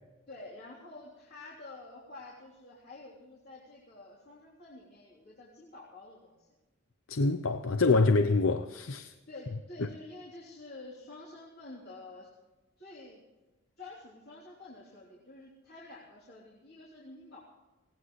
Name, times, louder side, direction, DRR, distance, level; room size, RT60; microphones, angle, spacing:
voice 1, 0.3-6.5 9.3-12.3 12.8-13.2 13.8-17.4, left 2 dB, 50° left, 3.4 m, -49 dB
voice 2, 7.1-9.1, left 3 dB, 85° left, 0.7 m, -25 dB
19.0 x 18.0 x 3.2 m
head